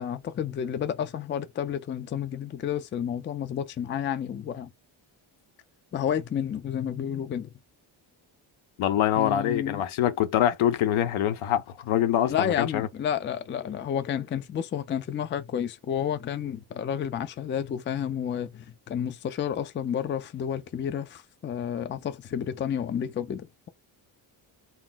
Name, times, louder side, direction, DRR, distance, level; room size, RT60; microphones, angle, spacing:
voice 1, 0.0-4.7 5.9-7.5 9.2-9.8 12.3-23.7, left 8 dB, 25° left, 0.3 m, -31 dB
voice 2, 8.8-12.9, left 11 dB, 80° left, 0.7 m, -24 dB
2.1 x 2.1 x 3.8 m
cardioid pair, 75°, 48 cm